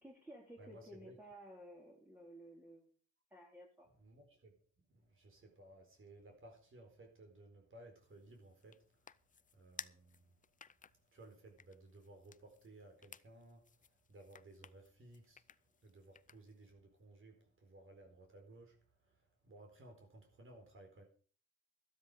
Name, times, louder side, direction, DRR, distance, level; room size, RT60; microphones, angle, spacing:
voice 1, 0.0-2.9 3.3-3.9, equal, 5° right, -3 dB, 3.7 m, -55 dB
voice 2, 0.6-1.1 4.0-4.5 4.9-8.8 9.5-10.4 11.1-13.6 14.1-15.4 15.8-18.8 19.1-19.2 19.4-21.0, right 2 dB, 45° right, 2 dB, 4.4 m, -58 dB
sound 1, 8.0-16.7, left 7 dB, 25° left, 0.5 m, -58 dB
13.0 x 13.0 x 5.1 m, 0.42 s
cardioid pair, 90°, 30 cm